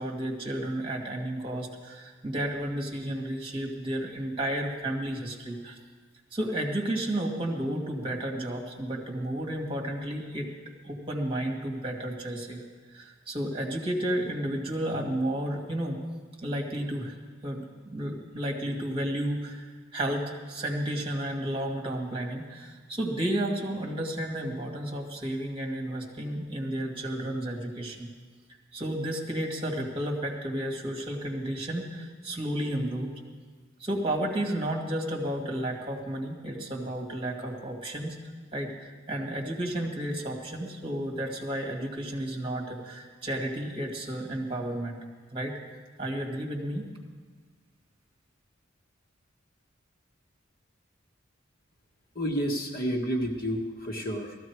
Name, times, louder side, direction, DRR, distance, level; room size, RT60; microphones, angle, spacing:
voice 1, 0.0-5.8 6.3-10.5 10.8-12.6 12.9-16.0 16.4-17.1 17.4-28.1 28.7-33.1 33.8-38.2 38.5-45.0 45.3-45.5 46.0-46.9, right 1 dB, 25° right, 0 dB, 2.1 m, -32 dB
voice 2, 52.1-54.4, equal, 50° left, 0 dB, 1.7 m, -30 dB
18.0 x 14.0 x 4.7 m, 1.5 s
head